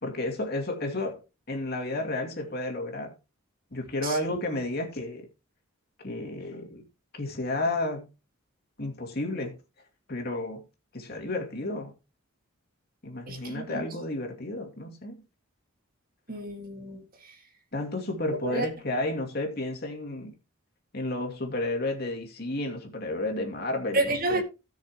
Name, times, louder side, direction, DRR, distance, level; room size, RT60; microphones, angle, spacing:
voice 1, 0.0-1.2 1.5-3.2 3.7-5.3 6.0-6.8 7.1-8.1 8.8-9.6 10.1-10.6 10.9-11.9 13.0-15.2 17.7-20.3 20.9-24.4, left 2 dB, 50° left, 2.5 m, -32 dB
voice 2, 4.0-4.4 13.3-13.8 16.3-17.0 18.4-18.7 23.9-24.4, right 2 dB, 45° right, 1.9 m, -30 dB
17.0 x 6.4 x 3.0 m
head